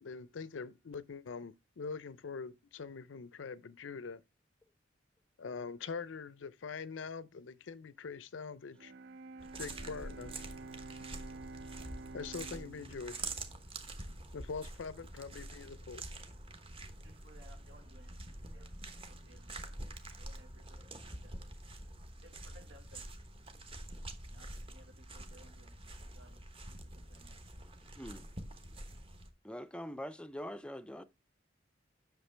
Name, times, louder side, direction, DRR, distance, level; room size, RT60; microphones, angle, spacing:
voice 1, 0.0-4.2 5.4-8.9 9.6-10.3 12.1-13.2 14.3-16.0, left 5 dB, 85° left, 0.5 m, -43 dB
Bowed string instrument, 8.7-14.7, right 3 dB, 60° right, 0.4 m, -50 dB
sound 1, 9.4-29.3, right 2 dB, 30° right, 1.1 m, -47 dB
voice 2, 17.0-19.5 20.2-21.4 22.2-23.2 24.2-27.4, right 1 dB, 90° right, 1.7 m, -62 dB
voice 3, 28.0-28.3 29.4-31.0, equal, 5° left, 0.4 m, -43 dB
8.0 x 6.3 x 3.3 m
head